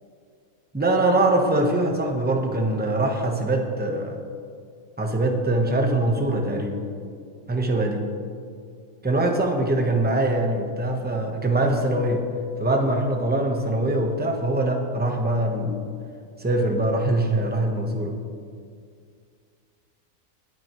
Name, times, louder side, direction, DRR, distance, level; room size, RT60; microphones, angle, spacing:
voice 1, 0.7-4.2 5.0-6.8 7.5-8.0 9.0-12.2 12.6-15.8 16.4-18.2, right 2 dB, 10° right, 2 dB, 1.0 m, -23 dB
21.0 x 8.8 x 3.1 m, 2.3 s
omnidirectional pair, 1.4 m